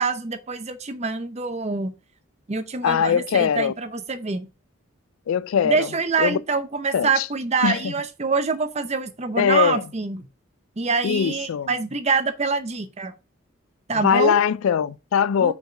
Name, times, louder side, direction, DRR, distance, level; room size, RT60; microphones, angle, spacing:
voice 1, 0.0-1.9 2.5-4.5 5.6-10.3 10.8-13.1 13.9-14.4 15.4-15.5, right 4 dB, 30° right, 0.7 m, -25 dB
voice 2, 2.8-3.7 5.3-5.9 6.2-6.4 6.9-7.3 7.6-7.9 9.4-9.8 11.0-11.7 14.0-15.5, left 7 dB, 80° left, 0.3 m, -21 dB
4.8 x 4.6 x 5.0 m
head